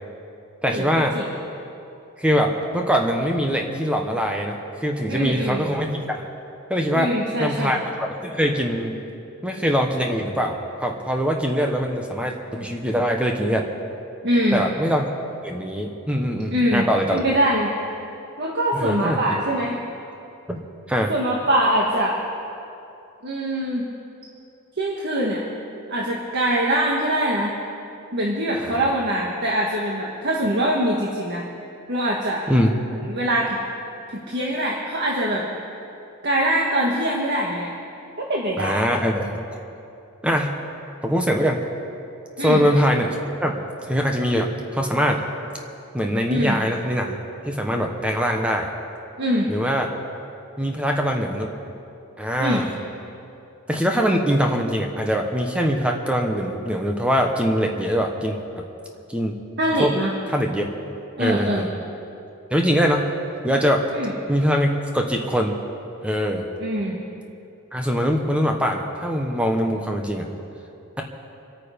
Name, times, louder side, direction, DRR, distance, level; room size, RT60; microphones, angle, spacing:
voice 1, 0.6-1.1 2.2-6.2 6.7-7.1 7.4-9.0 9.4-13.7 14.5-15.1 15.4-17.3 18.7-19.2 20.5-20.6 20.9-21.1 28.5-28.9 32.5-32.7 38.6-39.4 40.2-40.5 41.0-41.6 42.4-43.6 43.9-45.2 45.9-47.2 47.5-48.7 49.5-49.9 50.6-51.5 52.2-52.7 53.7-58.4 59.1-59.3 59.8-59.9 60.3-60.7 61.2-61.7 62.5-63.1 63.4-63.9 64.3-65.6 66.0-66.5 67.7-70.3, equal, 5° right, 2 dB, 1.0 m, -22 dB
voice 2, 5.1-5.6 6.9-7.8 14.2-14.6 16.5-17.7 18.4-19.8 21.1-22.2 23.2-23.9 24.8-25.4 25.9-27.6 28.1-31.5 31.9-32.4 33.0-33.6 34.1-35.5 36.2-37.7 38.2-38.8 42.4-42.6 46.3-46.6 49.2-49.5 52.4-52.6 59.6-60.1 61.2-61.7 63.9-64.1 66.6-67.0, right 1 dB, 50° right, -2 dB, 1.5 m, -23 dB
26.5 x 9.2 x 5.1 m, 2.7 s
head